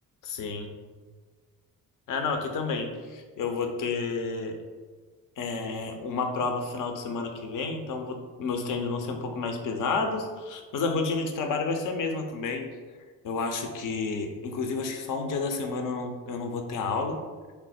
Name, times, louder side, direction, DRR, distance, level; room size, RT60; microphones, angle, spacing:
voice 1, 0.2-0.7 2.1-4.6 5.4-12.7 13.2-17.2, left 4 dB, 40° left, 4 dB, 0.6 m, -30 dB
3.2 x 2.0 x 4.2 m, 1.5 s
figure-of-eight pair, 40°, 48 cm